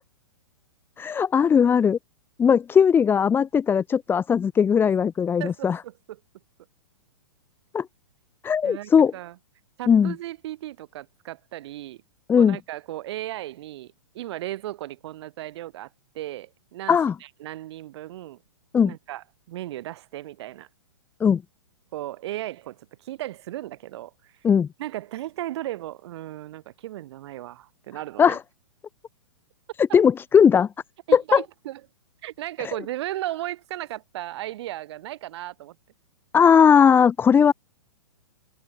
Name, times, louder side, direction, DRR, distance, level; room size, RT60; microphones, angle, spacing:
voice 1, 1.0-2.0 2.4-5.8 7.7-7.9 8.4-9.1 9.9-10.1 12.3-12.6 16.9-17.1 18.7-18.9 21.2-21.4 24.4-24.7 28.2-28.4 29.9-30.7 31.1-31.4 36.3-37.5, left 7 dB, 15° left, 0.7 m, -18 dB
voice 2, 5.4-6.2 8.6-9.4 9.8-12.0 12.4-15.9 16.1-18.4 18.8-20.7 21.9-24.3 24.8-28.4 29.9-30.0 31.1-31.8 32.2-35.8, right 14 dB, 55° right, 4.7 m, -36 dB
hypercardioid pair, 125°, 17 cm